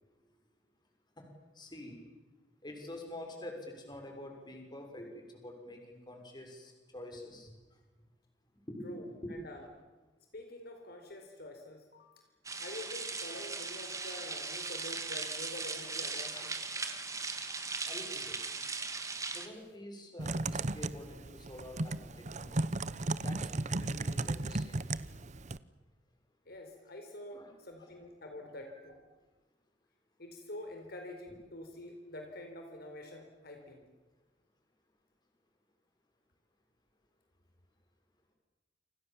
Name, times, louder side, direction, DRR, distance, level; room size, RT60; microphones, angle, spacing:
voice 1, 1.6-2.0 2.6-7.5 8.7-9.4 16.3-16.5 17.9-18.4 19.3-22.6 23.2-24.8 27.3-27.5, left 1 dB, 25° left, 3 dB, 6.1 m, -47 dB
voice 2, 8.8-9.7 10.3-12.1 12.6-16.8 26.5-29.0 30.2-33.8, left 1 dB, 55° left, 4 dB, 4.3 m, -47 dB
sound 1, 12.4-19.5, right 4 dB, 20° right, 2.5 m, -38 dB
Typing, 20.2-25.6, right 2 dB, 40° right, 0.8 m, -35 dB
29.5 x 26.5 x 7.3 m, 1.2 s
head